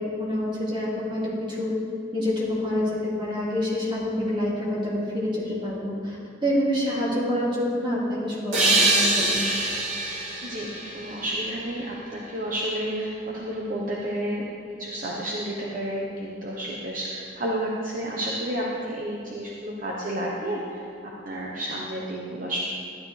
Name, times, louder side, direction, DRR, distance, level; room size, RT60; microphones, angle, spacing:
voice 1, 0.0-1.7 2.1-9.4, left 1 dB, 25° right, -6 dB, 2.6 m, -27 dB
sound 1, 8.5-12.0, right 2 dB, 90° right, 2.5 m, -24 dB
voice 2, 10.4-14.5 14.8-20.8 21.2-22.6, right 1 dB, 45° right, -4 dB, 1.0 m, -31 dB
12.5 x 11.5 x 3.4 m, 2.4 s
head